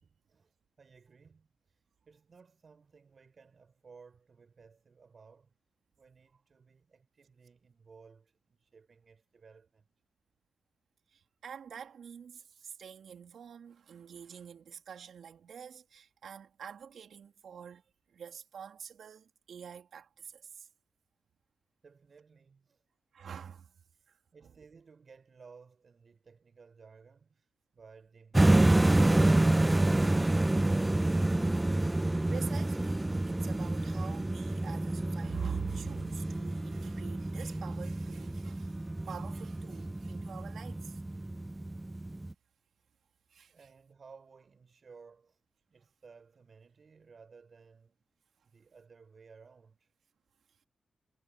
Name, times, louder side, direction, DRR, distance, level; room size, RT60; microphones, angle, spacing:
voice 1, 0.0-5.5 6.0-9.9 21.8-22.8 23.9-30.9 43.5-45.4 45.7-48.0 48.4-49.9, right 5 dB, 55° right, 5.2 m, -58 dB
voice 2, 11.1-17.8 18.1-20.7 23.1-23.7 24.1-24.5 32.0-33.0 33.2-41.0 43.3-43.6, right 7 dB, 80° right, 3.6 m, -46 dB
sound 1, 28.3-42.3, right 2 dB, 20° right, 0.4 m, -28 dB
cardioid pair, 60°, 0 cm